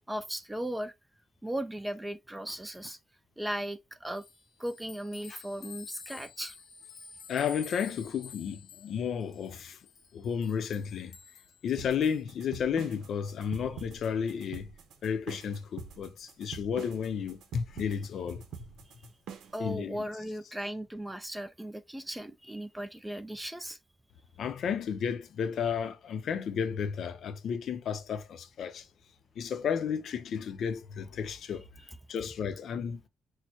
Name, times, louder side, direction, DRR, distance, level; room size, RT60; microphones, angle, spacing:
voice 1, 0.1-0.9 1.4-3.0 3.4-4.2 4.6-6.6 19.5-23.8, right 1 dB, 10° right, 0.4 m, -37 dB
sound 1, 4.2-12.2, left 6 dB, 85° left, 0.9 m, -50 dB
voice 2, 7.3-9.8 10.1-11.2 11.6-14.7 15.0-18.4 19.6-20.0 24.4-28.9 29.4-31.6 32.1-33.0, left 7 dB, 60° left, 0.6 m, -32 dB
sound 2, 11.8-19.7, right 7 dB, 80° right, 0.7 m, -45 dB
6.2 x 2.1 x 2.9 m
cardioid pair, 135°, 0 cm